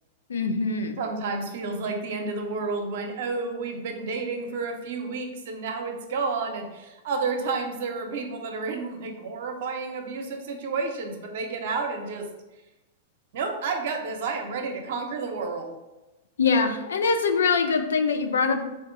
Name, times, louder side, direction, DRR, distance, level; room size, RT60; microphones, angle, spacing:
voice 1, 0.3-1.0 16.4-18.6, left 4 dB, 75° left, 7 dB, 0.4 m, -23 dB
voice 2, 1.0-12.3 13.3-15.8, right 4 dB, 60° right, 4 dB, 0.7 m, -31 dB
3.5 x 2.5 x 3.8 m, 1.0 s
hypercardioid pair, 105°, 0 cm